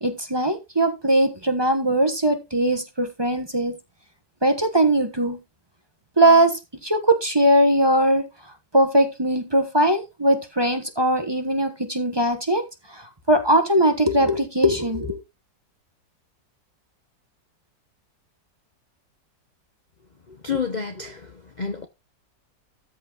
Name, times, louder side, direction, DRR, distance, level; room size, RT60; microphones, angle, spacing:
voice 1, 0.0-3.8 4.4-5.4 6.2-8.2 8.7-15.2, right 1 dB, 20° right, 0.9 m, -20 dB
voice 2, 20.3-21.9, left 6 dB, 65° left, 0.4 m, -30 dB
13.5 x 5.1 x 3.9 m
omnidirectional pair, 2.0 m